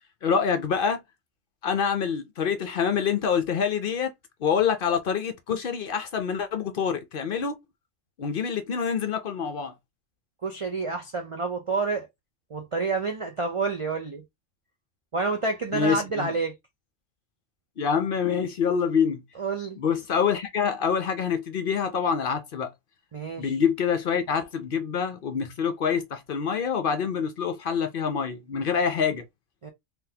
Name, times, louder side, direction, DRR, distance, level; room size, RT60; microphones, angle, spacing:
voice 1, 0.2-1.0 1.6-4.1 4.4-7.6 8.2-9.7 15.7-16.3 17.8-19.2 19.8-22.7 23.4-29.2, left 7 dB, 55° left, 0.6 m, -26 dB
voice 2, 10.4-12.1 12.5-14.2 15.1-16.5 19.4-19.8 23.1-23.5 29.6-29.7, right 3 dB, 60° right, 0.3 m, -28 dB
3.9 x 2.7 x 2.7 m
omnidirectional pair, 1.3 m